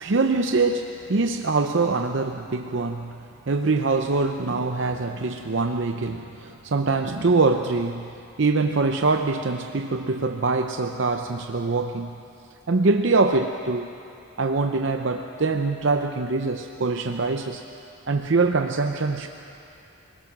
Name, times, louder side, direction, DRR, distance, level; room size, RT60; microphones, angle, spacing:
voice 1, 0.0-3.2 3.5-8.1 8.4-12.1 12.7-13.9 14.4-17.6 18.1-19.3, right 3 dB, 60° right, 5 dB, 0.6 m, -24 dB
21.5 x 20.5 x 6.1 m, 2.7 s
head